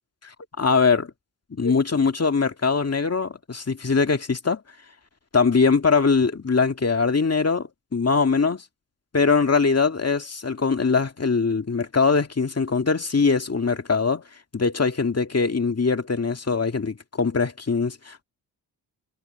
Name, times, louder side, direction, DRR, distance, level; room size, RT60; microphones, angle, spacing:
voice 1, 0.6-1.1 1.5-4.6 5.3-8.6 9.1-14.2 14.5-18.2, left 4 dB, 30° left, 2.3 m, -22 dB
supercardioid pair, 45°, 46 cm